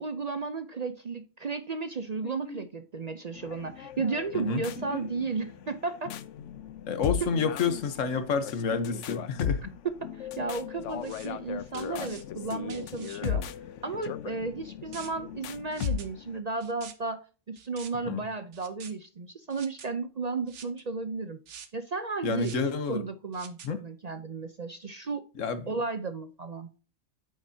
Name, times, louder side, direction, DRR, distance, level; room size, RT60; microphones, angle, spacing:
voice 1, 0.0-6.1 9.8-13.4 13.8-21.4 21.7-22.5 22.9-25.2 25.7-26.7, right 4 dB, 45° right, 0.5 m, -34 dB
voice 2, 2.2-2.6 4.3-5.0 6.9-9.7 18.1-18.2 22.2-23.0 23.6-23.8 25.4-25.7, left 5 dB, 90° left, 1.4 m, -30 dB
sound 1, 3.3-16.4, left 9 dB, 75° left, 0.9 m, -37 dB
sound 2, 10.9-11.3 11.7-12.2 12.7-13.2 14.9-15.1 15.7-16.1 16.6-16.9 17.6-17.9 18.5-18.9 19.5-19.9 20.5-20.8 21.5-21.7 22.4-22.7 23.3-23.7, right 7 dB, 70° right, 1.3 m, -47 dB
8.7 x 6.4 x 2.7 m
omnidirectional pair, 1.3 m